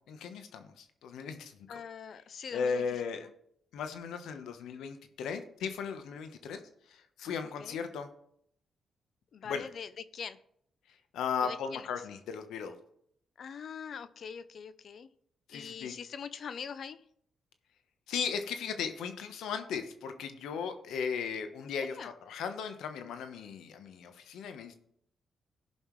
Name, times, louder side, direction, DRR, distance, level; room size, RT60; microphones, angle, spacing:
voice 1, 0.1-1.6 2.5-3.3 3.7-8.1 9.4-9.7 10.9-12.7 15.5-15.9 18.1-24.7, left 6 dB, 85° left, 8 dB, 1.0 m, -37 dB
voice 2, 1.7-2.8 7.6-7.8 9.3-10.4 11.4-11.9 13.4-15.1 15.5-17.0 21.9-22.1, left 6 dB, 65° left, 14 dB, 0.5 m, -43 dB
16.5 x 5.5 x 3.2 m, 0.70 s
cardioid pair, 65°, 0 cm